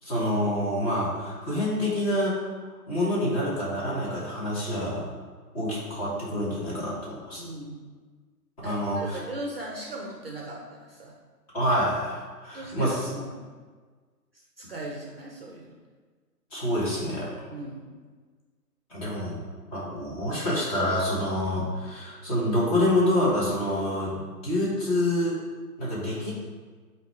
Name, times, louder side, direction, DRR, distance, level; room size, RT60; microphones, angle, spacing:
voice 1, 0.0-2.4 2.9-5.1 5.5-7.5 8.6-9.2 11.5-12.9 16.5-17.3 18.9-19.4 19.7-25.4 25.8-26.3, left 1 dB, 20° left, -8 dB, 1.9 m, -27 dB
voice 2, 7.4-7.9 8.6-11.1 12.5-13.5 14.6-15.8 17.5-17.9, right 2 dB, 40° right, -1 dB, 0.8 m, -38 dB
8.8 x 3.0 x 4.7 m, 1.5 s
figure-of-eight pair, 140°, 48 cm